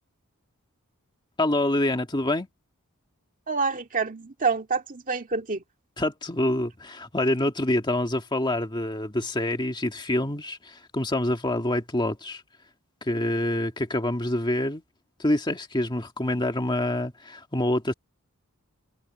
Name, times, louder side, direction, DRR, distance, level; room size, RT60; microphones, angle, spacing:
voice 1, 1.4-2.5 6.0-12.4 13.0-14.8 15.2-17.9, left 1 dB, 20° left, 1.9 m, -26 dB
voice 2, 3.5-5.6, right 4 dB, 40° right, 2.2 m, -27 dB
head